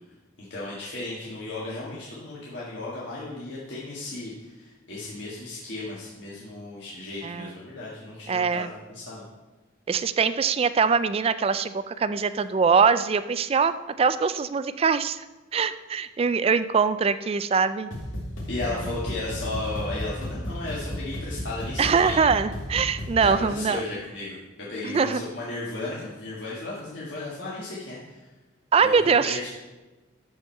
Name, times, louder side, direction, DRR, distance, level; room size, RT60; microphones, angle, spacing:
voice 1, 0.4-9.2 18.5-22.2 23.2-28.3 28.8-29.5, left 2 dB, 60° left, -7 dB, 1.7 m, -35 dB
voice 2, 8.3-8.7 9.9-15.2 15.5-17.9 21.8-23.8 24.8-25.2 28.7-29.4, right 5 dB, 30° right, 13 dB, 0.3 m, -23 dB
sound 1, 17.9-23.5, equal, 85° left, 2.1 m, -34 dB
13.0 x 4.5 x 4.5 m, 1.2 s
head